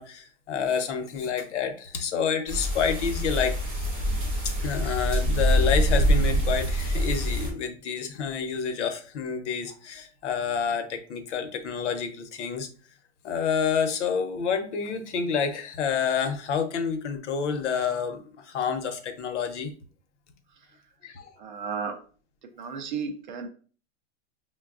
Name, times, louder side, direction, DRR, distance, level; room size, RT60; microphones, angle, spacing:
voice 1, 0.0-3.9 4.6-12.7 13.2-19.7 21.0-21.2, left 6 dB, 90° left, 6 dB, 0.8 m, -28 dB
sound 1, 2.5-7.5, equal, 25° right, 1.3 m, -25 dB
voice 2, 21.4-22.0 22.4-23.5, right 6 dB, 45° right, 5 dB, 0.5 m, -34 dB
5.9 x 2.2 x 2.4 m, 0.41 s
supercardioid pair, 180°, 34 cm